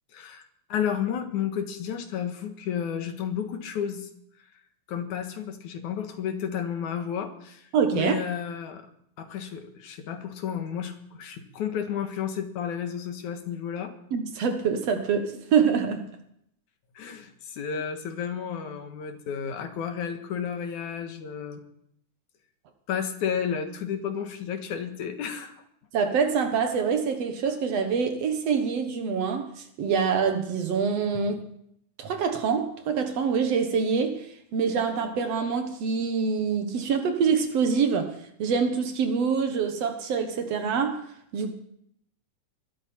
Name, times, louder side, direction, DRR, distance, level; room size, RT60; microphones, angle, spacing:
voice 1, 0.1-0.4 0.7-4.1 4.9-8.9 9.2-13.9 16.9-21.6 22.9-25.5, left 8 dB, 80° left, 3.0 m, -32 dB
voice 2, 7.7-8.2 14.1-16.1 25.9-31.4 32.0-34.3 34.5-41.1 41.3-41.5, right 6 dB, 60° right, 2.2 m, -25 dB
20.0 x 13.0 x 4.5 m
omnidirectional pair, 3.4 m